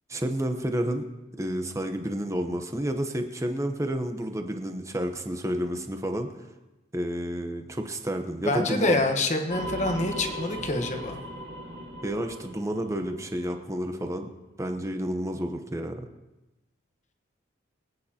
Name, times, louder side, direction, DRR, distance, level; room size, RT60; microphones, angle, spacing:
voice 1, 0.1-1.1 1.4-6.3 6.9-9.0 12.0-14.3 14.6-16.1, right 1 dB, 15° right, 5 dB, 0.8 m, -30 dB
voice 2, 8.4-11.2, left 2 dB, 35° left, 5 dB, 1.1 m, -26 dB
sound 1, 9.5-13.9, equal, 50° right, 1.9 m, -38 dB
24.0 x 9.3 x 2.9 m, 1.1 s
head